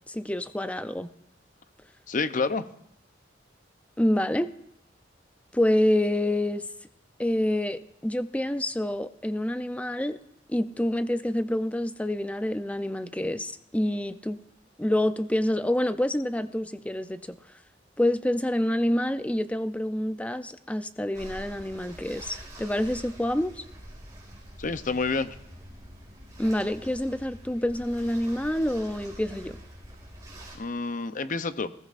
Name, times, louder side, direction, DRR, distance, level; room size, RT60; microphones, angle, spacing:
voice 1, 0.1-1.1 4.0-4.5 5.5-6.7 7.2-10.2 10.5-14.4 14.8-17.4 18.0-23.6 26.4-29.6, left 1 dB, 5° left, 11 dB, 0.5 m, -27 dB
voice 2, 2.1-2.6 24.6-25.3 30.6-31.7, left 4 dB, 45° left, 11 dB, 0.7 m, -28 dB
sound 1, 21.1-30.6, right 1 dB, 20° right, 4.3 m, -46 dB
20.5 x 14.5 x 2.5 m, 0.80 s
head